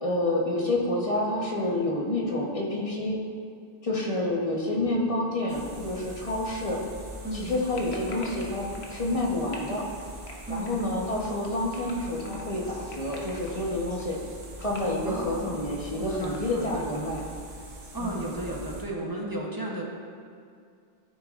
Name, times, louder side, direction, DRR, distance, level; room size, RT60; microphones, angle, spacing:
voice 1, 0.0-3.2 3.8-6.8 7.3-9.8 10.5-14.2 14.6-17.2 18.0-18.3, left 1 dB, 35° left, -3 dB, 1.2 m, -28 dB
sound 1, 5.5-18.8, right 1 dB, 80° right, 1.4 m, -43 dB
voice 2, 7.2-7.6 10.5-10.9 15.0-15.7 16.0-16.9 17.9-19.8, right 1 dB, 20° right, -3 dB, 1.0 m, -34 dB
sound 2, 7.5-17.4, left 2 dB, 75° left, 1.3 m, -46 dB
12.5 x 6.3 x 2.5 m, 2.3 s
omnidirectional pair, 1.1 m